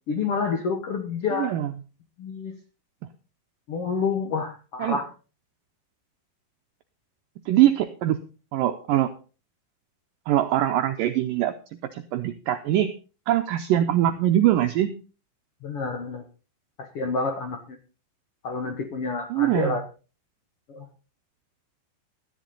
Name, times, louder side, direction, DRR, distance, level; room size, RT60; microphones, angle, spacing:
voice 1, 0.1-1.5 2.2-2.5 3.7-5.1 15.6-16.2 16.8-17.8 18.4-19.8 20.7-20.9, left 4 dB, 85° left, 5 dB, 1.2 m, -28 dB
voice 2, 1.4-1.7 4.8-5.0 7.5-8.2 8.5-9.1 10.3-11.5 11.9-12.9 13.3-14.9 19.3-19.7, right 12 dB, 85° right, 7 dB, 1.9 m, -22 dB
13.5 x 10.5 x 4.0 m, 0.35 s
omnidirectional pair, 4.8 m